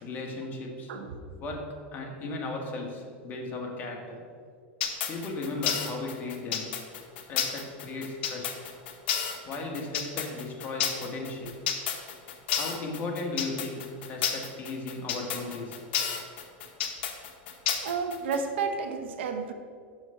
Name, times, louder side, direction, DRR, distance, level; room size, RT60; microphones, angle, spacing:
voice 1, 0.0-0.9 1.4-4.3 5.1-6.7 7.3-8.6 9.5-11.6 12.5-15.8, left 2 dB, 30° left, 0 dB, 1.5 m, -36 dB
sound 1, 4.8-18.4, left 8 dB, 70° left, 1.0 m, -31 dB
voice 2, 17.8-19.5, right 5 dB, 80° right, 6 dB, 0.9 m, -31 dB
6.5 x 6.1 x 5.6 m, 2.1 s
supercardioid pair, 130°, 6 cm